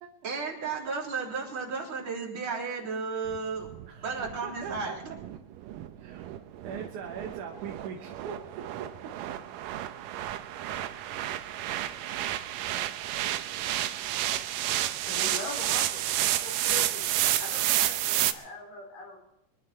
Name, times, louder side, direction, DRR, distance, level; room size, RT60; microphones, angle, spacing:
voice 1, 0.2-3.7 4.0-5.0, right 4 dB, 40° right, -4 dB, 4.4 m, -33 dB
sound 1, 3.3-18.3, right 13 dB, 85° right, 2.4 m, -31 dB
voice 2, 3.9-4.9 6.0-8.9, right 6 dB, 70° right, 2 dB, 2.6 m, -41 dB
voice 3, 15.1-17.0 17.4-19.2, left 3 dB, 85° left, 2 dB, 5.6 m, -41 dB
24.5 x 12.0 x 4.4 m, 0.87 s
omnidirectional pair, 3.8 m